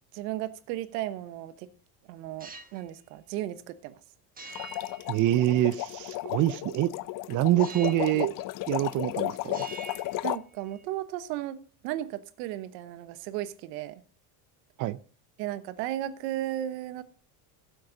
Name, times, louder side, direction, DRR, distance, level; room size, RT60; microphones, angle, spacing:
voice 1, 0.1-1.7 2.1-4.0 10.2-11.6 11.8-14.0 15.4-17.0, right 13 dB, 85° right, 12 dB, 1.2 m, -35 dB
sound 1, 2.3-2.9 4.4-5.8 7.6-8.3 8.6-9.2 9.4-10.8, right 4 dB, 20° right, 1.5 m, -46 dB
sound 2, 4.5-10.4, left 17 dB, 45° left, 0.5 m, -34 dB
voice 2, 5.1-6.9 7.3-8.3 8.7-9.6 14.8-15.0, right 14 dB, 40° right, 16 dB, 0.5 m, -25 dB
15.0 x 7.9 x 3.9 m, 0.42 s
supercardioid pair, 115°, 48 cm